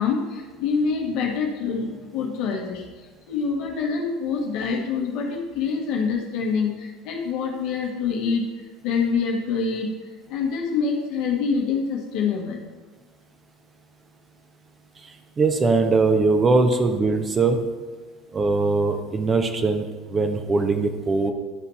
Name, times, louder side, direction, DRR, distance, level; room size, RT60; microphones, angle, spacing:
voice 1, 0.0-8.5 8.8-9.9 10.3-12.6, left 5 dB, 60° left, 0 dB, 1.5 m, -26 dB
voice 2, 15.4-17.6 18.3-21.3, right 3 dB, 30° right, 6 dB, 0.9 m, -21 dB
11.5 x 4.1 x 4.3 m, 1.4 s
hypercardioid pair, 70°, 0 cm